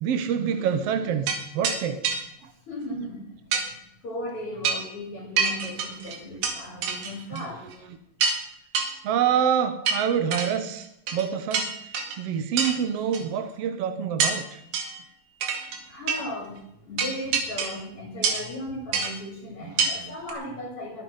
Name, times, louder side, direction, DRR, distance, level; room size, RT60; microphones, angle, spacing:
voice 1, 0.0-2.0 2.4-2.5 7.3-7.4 9.0-11.8 12.2-14.6 20.0-20.1, right 8 dB, 70° right, 9 dB, 1.5 m, -26 dB
sound 1, 1.3-1.4 1.6-1.8 2.0-2.2 3.5-3.7 4.6-4.9 5.4-6.6 6.8-7.4 7.7-7.8 8.2-8.4 8.8-8.9 9.9-10.5 11.1-11.3 11.5-12.2 12.6-12.8 13.1-13.2 14.2-14.4 14.7-15.0 15.4-15.8 16.1-16.2 17.0-17.8 18.2-18.5 18.9-19.1 19.8-19.9 20.3-20.4, right 5 dB, 90° right, 4.0 m, -26 dB
voice 2, 2.4-3.6 4.0-7.6 15.7-21.0, left 1 dB, 45° left, 1 dB, 3.4 m, -36 dB
22.5 x 9.8 x 5.6 m, 0.82 s
omnidirectional pair, 3.9 m